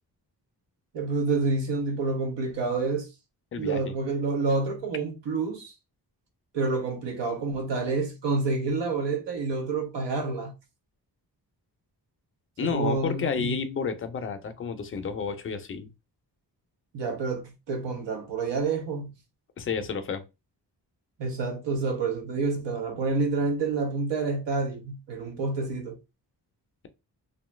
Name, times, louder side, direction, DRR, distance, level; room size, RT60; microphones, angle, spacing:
voice 1, 0.9-3.1 3.6-5.7 6.5-10.5 12.6-13.6 16.9-19.1 21.2-26.0, right 3 dB, 85° right, 0.9 m, -28 dB
voice 2, 3.5-4.0 12.6-15.9 19.6-20.2, left 6 dB, 30° left, 0.4 m, -31 dB
2.6 x 2.2 x 3.1 m
wide cardioid pair, 165°, 41 cm